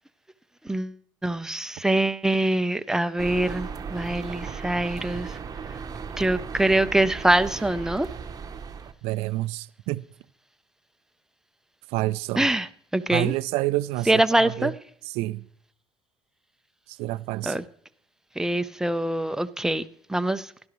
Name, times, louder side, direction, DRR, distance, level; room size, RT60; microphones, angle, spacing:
voice 1, 0.6-1.0 1.2-5.4 6.2-8.1 12.4-12.7 12.9-13.3 14.1-14.7 17.4-17.6 18.4-19.8 20.1-20.5, right 1 dB, 5° right, 0.7 m, -24 dB
sound 1, 3.2-8.9, right 6 dB, 35° right, 1.0 m, -36 dB
voice 2, 9.0-10.0 11.9-12.5 13.1-14.7 15.1-15.4 16.9-17.6, right 18 dB, 75° right, 0.4 m, -28 dB
16.5 x 11.5 x 3.1 m
hypercardioid pair, 70°, 10 cm